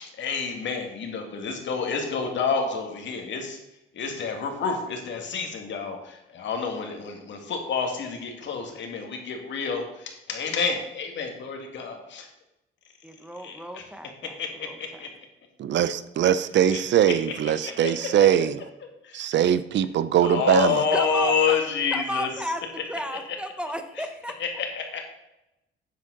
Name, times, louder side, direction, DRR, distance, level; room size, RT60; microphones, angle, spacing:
voice 1, 0.0-3.6 3.9-12.3 13.4-13.9 14.4-15.1 16.7-16.8 17.4-17.9 19.0-19.3 20.2-22.5 24.0-24.1 24.4-25.1, left 5 dB, 65° left, 2.2 m, -29 dB
voice 2, 13.0-14.3 14.6-14.7 20.9-21.6 21.9-22.6 22.9-24.3, equal, 5° right, 1.1 m, -33 dB
voice 3, 15.6-18.6 19.1-20.8, right 10 dB, 65° right, 0.6 m, -21 dB
9.2 x 7.7 x 4.0 m
cardioid pair, 90°, 20 cm